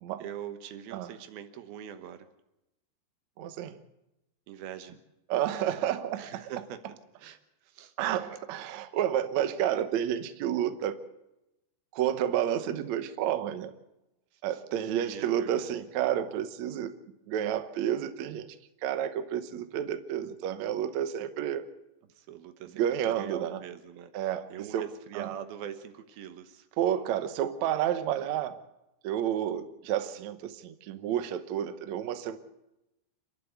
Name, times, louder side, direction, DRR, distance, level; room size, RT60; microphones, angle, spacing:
voice 1, 0.2-2.3 4.5-5.0 6.1-6.8 7.2-7.9 14.3-15.8 22.1-26.7, right 10 dB, 70° right, 9 dB, 2.9 m, -43 dB
voice 2, 3.4-3.8 5.3-6.4 8.0-11.0 11.9-13.7 14.4-16.9 17.3-18.6 18.8-21.7 22.7-23.6 24.1-24.8 25.1-25.3 26.8-28.5 29.0-32.4, right 10 dB, 90° right, 9 dB, 1.6 m, -30 dB
28.0 x 11.5 x 8.1 m, 0.92 s
omnidirectional pair, 4.9 m